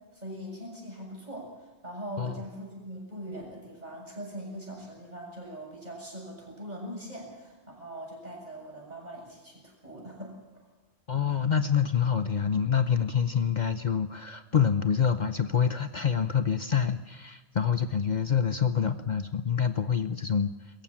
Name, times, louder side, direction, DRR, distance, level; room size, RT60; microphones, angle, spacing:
voice 1, 0.1-10.3, equal, 40° right, -1 dB, 7.3 m, -41 dB
voice 2, 11.1-20.5, left 7 dB, 45° left, 10 dB, 0.9 m, -26 dB
22.5 x 14.5 x 8.7 m, 1.2 s
omnidirectional pair, 1.1 m